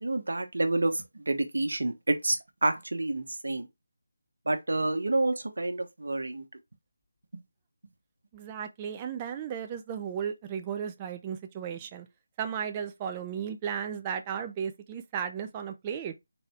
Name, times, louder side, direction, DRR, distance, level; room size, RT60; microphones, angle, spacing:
voice 1, 0.0-3.7 4.5-6.4, right 2 dB, 80° right, 1.0 m, -29 dB
voice 2, 8.3-12.1 12.4-16.1, right 8 dB, 20° right, 0.4 m, -35 dB
4.0 x 2.2 x 4.2 m
figure-of-eight pair, 165°, 0 cm